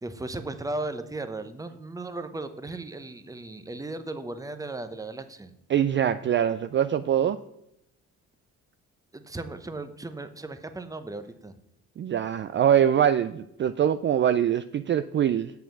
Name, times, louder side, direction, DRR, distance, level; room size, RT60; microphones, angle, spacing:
voice 1, 0.0-5.5 9.1-11.5, right 2 dB, 10° right, 10 dB, 0.8 m, -36 dB
voice 2, 5.7-7.4 12.0-15.5, right 9 dB, 40° right, 12 dB, 0.4 m, -23 dB
7.2 x 5.8 x 6.8 m, 0.79 s
cardioid pair, 90°, 30 cm